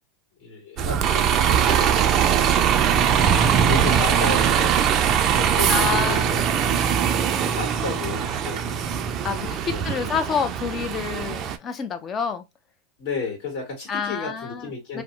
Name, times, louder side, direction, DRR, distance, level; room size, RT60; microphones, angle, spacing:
voice 1, 0.4-2.6 3.4-6.5 7.4-8.9 9.4-10.1 13.0-15.0, left 4 dB, 50° left, 1.8 m, -33 dB
Bus, 0.8-11.6, right 8 dB, 35° right, 0.4 m, -21 dB
voice 2, 5.7-6.3 9.2-12.4 13.9-15.0, left 6 dB, 30° left, 0.5 m, -28 dB
2.9 x 2.0 x 3.2 m
hypercardioid pair, 120°, 0 cm